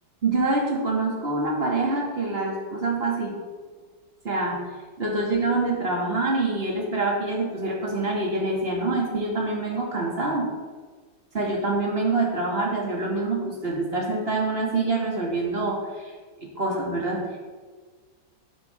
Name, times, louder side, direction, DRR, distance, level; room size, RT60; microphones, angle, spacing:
voice 1, 0.2-3.3 4.2-4.6 5.0-10.5 11.3-16.1 16.6-17.2, right 2 dB, 30° right, -2 dB, 2.4 m, -25 dB
11.5 x 11.0 x 3.6 m, 1.4 s
omnidirectional pair, 2.1 m